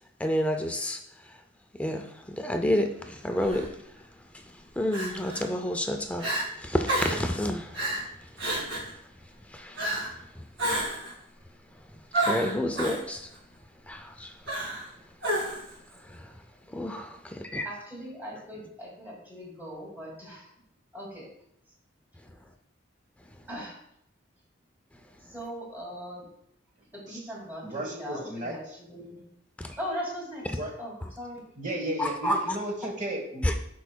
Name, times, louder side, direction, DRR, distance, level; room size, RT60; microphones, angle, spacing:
voice 1, 0.2-1.3 1.7-3.8 4.3-6.3 6.5-7.9 8.2-8.6 9.5-10.0 10.4-10.5 12.1-13.3 13.9-14.4 15.9-16.3 16.7-17.7 29.6-29.8 32.0-32.6 33.4-33.6, left 1 dB, 5° left, 5 dB, 0.4 m, -30 dB
Crying sobbing, 3.4-3.6 4.9-5.4 5.9-6.0 6.2-6.5 6.9-7.2 7.7-8.0 8.4-8.9 9.8-10.1 10.6-11.1 12.1-13.0 14.5-14.9 15.2-15.7, right 1 dB, 70° right, 2.2 m, -30 dB
voice 2, 17.6-20.5 20.9-21.3 23.5-23.8 25.3-26.3 26.9-29.2 29.8-30.5 30.8-31.4, equal, 10° right, -3 dB, 2.1 m, -39 dB
voice 3, 27.6-28.6 30.5-30.7 31.6-33.6, right 1 dB, 40° right, 2 dB, 1.2 m, -34 dB
11.0 x 4.6 x 2.2 m, 0.74 s
head